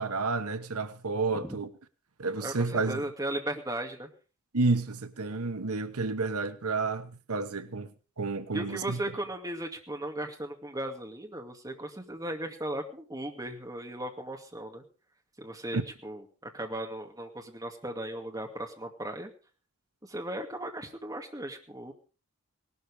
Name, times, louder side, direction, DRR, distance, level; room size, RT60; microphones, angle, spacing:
voice 1, 0.0-1.7 2.2-3.0 4.5-7.9 8.2-9.0 15.7-15.8, right 3 dB, 85° right, 1.1 m, -30 dB
voice 2, 2.4-4.1 8.5-14.8 15.4-19.3 20.0-21.9, right 1 dB, 15° right, 2.4 m, -37 dB
18.5 x 12.5 x 4.9 m
head